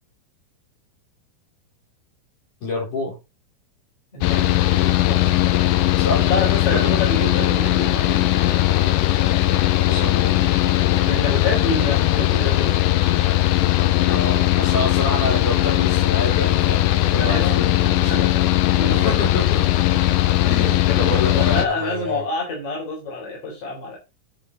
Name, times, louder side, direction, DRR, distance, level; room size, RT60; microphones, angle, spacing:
voice 1, 2.6-3.2 6.0-6.3 6.7-7.0 9.8-10.4 14.0-18.3 18.9-19.6 20.4-22.3, left 2 dB, 55° left, -3 dB, 5.8 m, -28 dB
voice 2, 4.1-5.4 6.3-8.3 11.0-12.8 17.1-19.0 20.6-24.0, left 2 dB, 40° left, -1 dB, 4.6 m, -28 dB
Mechanical fan, 4.2-21.7, left 14 dB, 75° left, 2.2 m, -19 dB
10.5 x 5.8 x 4.1 m, 0.26 s
omnidirectional pair, 4.3 m